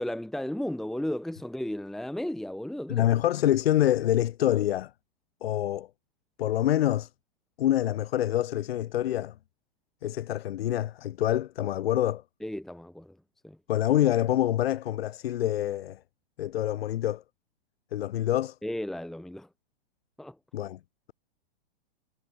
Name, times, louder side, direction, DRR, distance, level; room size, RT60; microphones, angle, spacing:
voice 1, 0.0-3.1 12.4-13.2 13.4-13.6 18.6-19.5 20.2-20.4, left 1 dB, ahead, 1.6 m, -34 dB
voice 2, 2.9-4.9 5.4-5.9 6.4-7.1 7.6-9.3 10.0-12.2 13.7-16.0 16.4-17.2 17.9-18.5 20.5-20.8, left 12 dB, 80° left, 0.8 m, -26 dB
hypercardioid pair, 155°, 30 cm